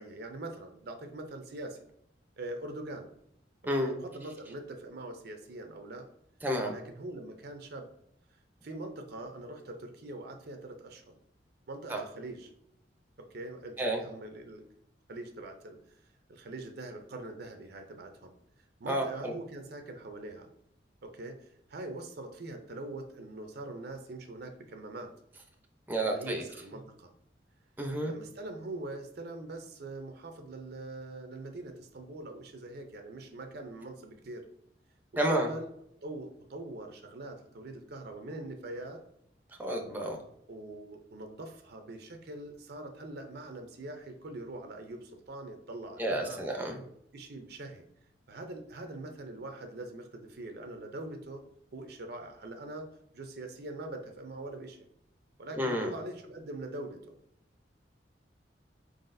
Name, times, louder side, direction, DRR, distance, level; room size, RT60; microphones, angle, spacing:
voice 1, 0.0-1.8 2.4-3.1 3.8-6.1 6.6-7.9 8.6-11.1 11.7-12.5 13.2-14.7 15.1-16.0 16.3-18.3 18.8-20.5 21.0-25.1 26.0-27.1 28.0-34.5 35.3-35.7 36.0-39.0 40.5-46.4 47.1-47.8 48.3-51.4 51.7-54.8 55.4-57.1, right 2 dB, 60° right, 6 dB, 0.5 m, -43 dB
voice 2, 6.4-6.7 11.9-12.0 13.8-14.0 18.9-19.3 25.9-26.4 27.8-28.1 35.2-35.5 39.6-40.2 46.0-46.8 55.6-55.9, right 1 dB, 10° right, 2 dB, 0.6 m, -30 dB
4.7 x 4.0 x 2.6 m, 0.75 s
head